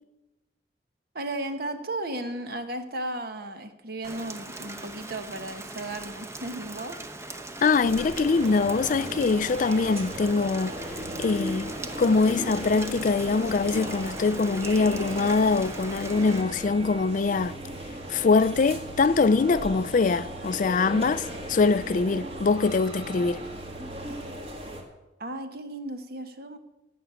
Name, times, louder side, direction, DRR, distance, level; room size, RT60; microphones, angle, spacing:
voice 1, 1.1-7.0 25.2-26.6, right 1 dB, 60° right, 1.3 m, -35 dB
Rain, 4.0-16.4, right 2 dB, 15° right, 0.9 m, -40 dB
voice 2, 7.6-10.9 11.2-11.7 12.0-17.6 18.1-23.4, left 4 dB, 45° left, 0.4 m, -23 dB
sound 1, 7.8-24.8, equal, 35° right, 2.1 m, -37 dB
17.5 x 6.0 x 8.3 m
head